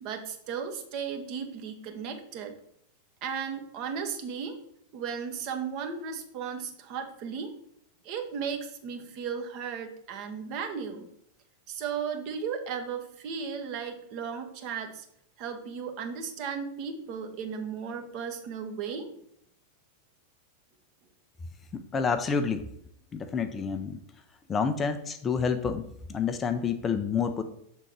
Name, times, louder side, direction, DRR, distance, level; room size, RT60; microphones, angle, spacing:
voice 1, 0.0-2.5 3.2-4.6 4.9-7.5 8.0-11.1 11.7-15.0 15.4-19.1, right 6 dB, 40° right, 5 dB, 1.0 m, -35 dB
voice 2, 21.7-22.7 23.1-24.0 24.5-27.4, left 6 dB, 20° left, 9 dB, 0.5 m, -29 dB
7.0 x 3.7 x 4.5 m, 0.73 s
figure-of-eight pair, 90°, 0 cm